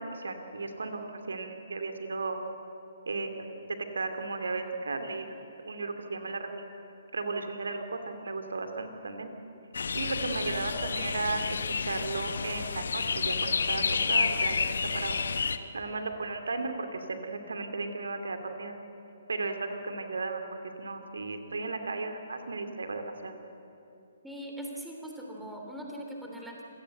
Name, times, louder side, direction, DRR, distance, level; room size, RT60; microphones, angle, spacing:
voice 1, 0.0-2.4 3.1-3.4 3.9-6.6 7.1-9.3 9.9-11.4 11.9-13.8 14.1-14.7 14.9-15.2 15.7-18.7 19.3-20.4 20.8-23.3, right 3 dB, 70° right, 6 dB, 2.7 m, -35 dB
sound 1, 9.7-15.6, left 5 dB, 65° left, 1.0 m, -30 dB
voice 2, 24.2-26.6, equal, ahead, -1 dB, 3.2 m, -41 dB
27.0 x 17.0 x 7.9 m, 2.9 s
figure-of-eight pair, 130°, 0 cm